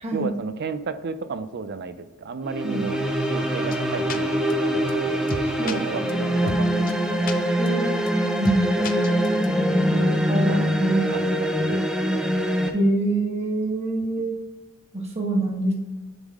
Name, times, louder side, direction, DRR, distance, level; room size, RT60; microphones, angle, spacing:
voice 1, 0.1-3.0 3.2-7.4 8.8-12.3, right 4 dB, 50° right, 11 dB, 0.5 m, -34 dB
sound 1, 2.4-12.7, equal, 5° right, 0.6 m, -23 dB
sound 2, 3.7-3.8 4.1-4.2 4.5-4.6 4.9-5.0 5.3-5.7 6.1-6.2 6.5-6.6 6.9-7.0 7.3-7.4 7.7-7.8 8.1-8.2 8.4-8.6 8.8-9.5, left 4 dB, 40° left, 0.5 m, -31 dB
voice 2, 7.6-7.9 8.3-8.7 10.3-11.1 12.7-14.4 14.9-15.7, right 2 dB, 30° right, -1 dB, 1.4 m, -25 dB
9.8 x 3.6 x 3.6 m, 1.2 s
head